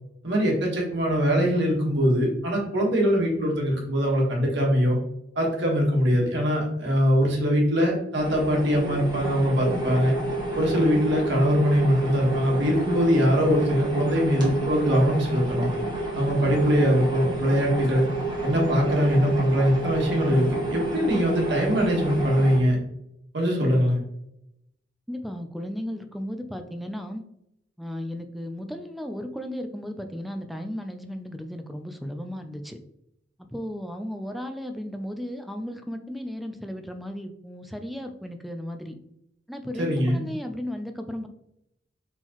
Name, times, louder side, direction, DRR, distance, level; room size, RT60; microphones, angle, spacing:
voice 1, 0.2-5.0 5.3-10.1 10.6-15.7 16.1-18.0 18.4-22.8 23.3-24.0 39.8-40.2, equal, 65° right, -1 dB, 1.4 m, -22 dB
sound 1, 8.1-22.6, right 2 dB, 25° right, 1.3 m, -29 dB
voice 2, 25.1-27.2 27.8-32.8 33.5-38.9 39.5-41.3, equal, ahead, 6 dB, 0.4 m, -35 dB
4.3 x 3.8 x 3.0 m, 0.80 s
head